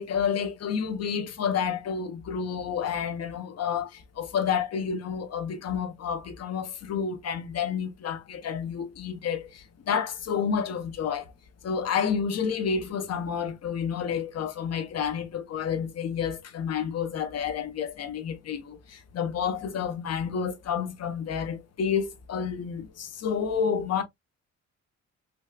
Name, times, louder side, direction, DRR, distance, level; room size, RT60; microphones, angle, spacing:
voice 1, 0.0-11.3 11.6-24.0, left 7 dB, 55° left, 1.0 m, -30 dB
5.0 x 2.4 x 2.2 m
cardioid pair, 90°, 30 cm